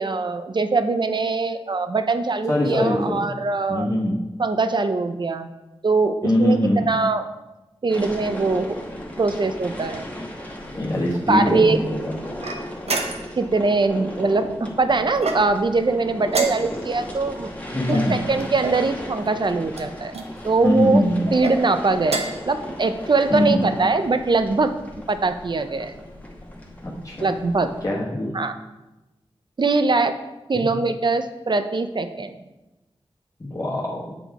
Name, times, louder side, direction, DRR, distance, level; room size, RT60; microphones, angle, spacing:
voice 1, 0.0-3.9 4.4-5.5 5.8-7.2 7.8-8.8 9.2-10.0 11.3-11.8 13.4-17.5 17.9-20.1 20.4-21.0 21.3-24.7 25.1-25.9 27.2-27.7 28.3-28.5 29.6-30.2 30.5-32.3, right 3 dB, 45° right, 9 dB, 0.5 m, -22 dB
voice 2, 2.5-3.2 3.7-4.2 6.2-6.9 10.7-12.1 17.7-18.1 20.6-21.3 23.3-23.6 26.8-27.3 27.8-28.3 30.5-30.7 33.4-34.1, left 1 dB, 30° left, -5 dB, 1.3 m, -22 dB
sound 1, 7.9-27.8, left 1 dB, 15° left, 1.2 m, -36 dB
sound 2, 12.4-13.5 15.2-15.7 16.3-17.0 17.9-18.8 19.7-20.3 21.2-21.6 22.0-22.5, right 3 dB, 85° right, 0.8 m, -28 dB
8.2 x 3.9 x 4.6 m, 1.1 s
wide cardioid pair, 75°, 10 cm